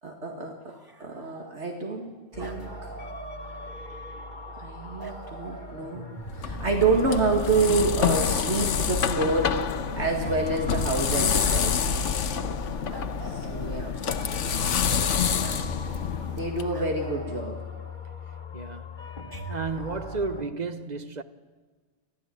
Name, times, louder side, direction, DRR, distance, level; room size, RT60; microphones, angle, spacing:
voice 1, 0.0-2.9 4.6-6.1 6.3-11.9 13.2-14.0 16.3-17.6, right 3 dB, 65° right, 2.3 m, -28 dB
sound 1, 0.7-2.0 2.4-4.0 5.0-6.4 7.1-8.7 10.2-11.9 12.9-14.6 15.4-15.6 16.7-18.4 19.3-20.5, right 3 dB, 20° right, 1.5 m, -45 dB
sound 2, 2.3-20.4, left 1 dB, 40° left, 1.6 m, -39 dB
sound 3, 6.3-16.6, left 7 dB, 80° left, 1.3 m, -27 dB
voice 2, 15.1-15.8 18.5-19.1 19.5-21.2, right 4 dB, 40° right, 1.1 m, -34 dB
25.5 x 15.0 x 9.2 m
omnidirectional pair, 1.2 m